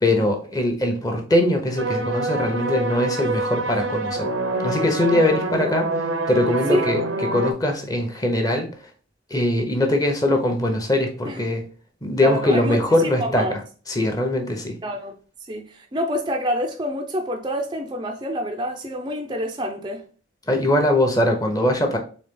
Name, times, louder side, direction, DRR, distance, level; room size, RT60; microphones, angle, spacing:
voice 1, 0.0-4.3 4.6-8.7 9.3-11.6 12.0-13.5 13.9-14.8 20.5-22.0, left 1 dB, 20° left, 0.8 m, -21 dB
sound 1, 1.8-7.5, right 2 dB, 85° right, 0.8 m, -26 dB
voice 2, 12.2-13.5 14.8-15.2 15.5-20.0, equal, 25° right, 0.5 m, -27 dB
4.0 x 3.3 x 3.7 m
head